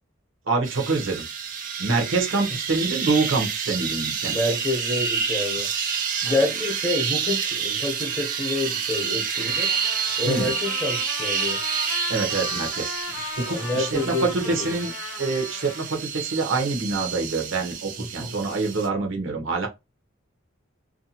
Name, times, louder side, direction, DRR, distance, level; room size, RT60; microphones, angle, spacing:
voice 1, 0.5-1.2 1.8-4.4 6.2-6.4 10.2-10.6 12.1-19.7, right 3 dB, 70° right, 0.8 m, -26 dB
sound 1, 0.6-18.9, right 7 dB, 40° right, 0.4 m, -29 dB
voice 2, 4.3-5.7 6.2-9.7 10.2-11.6 13.5-14.3 18.2-18.3, left 2 dB, 15° left, 0.6 m, -27 dB
Trumpet, 9.3-15.9, left 5 dB, 90° left, 0.5 m, -37 dB
2.5 x 2.3 x 2.7 m
head